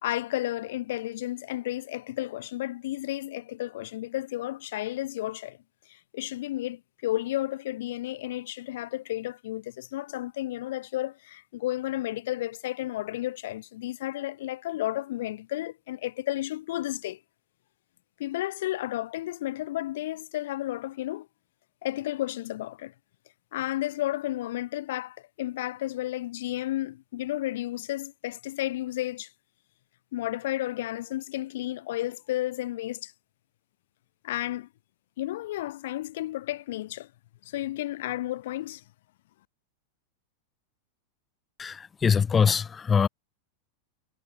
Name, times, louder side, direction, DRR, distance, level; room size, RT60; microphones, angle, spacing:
voice 1, 0.0-5.6 5.9-17.2 18.2-21.3 21.8-22.9 23.5-29.3 30.1-33.1 34.2-34.7 35.2-37.1 37.4-38.8, left 15 dB, 55° left, 1.3 m, -32 dB
voice 2, 41.6-43.1, left 6 dB, 20° left, 0.7 m, -23 dB
figure-of-eight pair, 90°, 0 cm